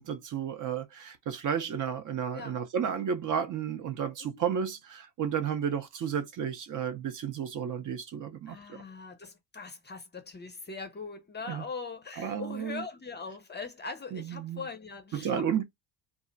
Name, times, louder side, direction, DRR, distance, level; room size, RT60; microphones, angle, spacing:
voice 1, 0.0-8.6 11.5-11.6 12.2-12.8 14.1-14.6 15.1-15.6, right 8 dB, 45° right, 0.6 m, -32 dB
voice 2, 8.5-15.6, left 4 dB, 25° left, 0.5 m, -41 dB
2.4 x 2.0 x 3.8 m
cardioid pair, 100°, 45 cm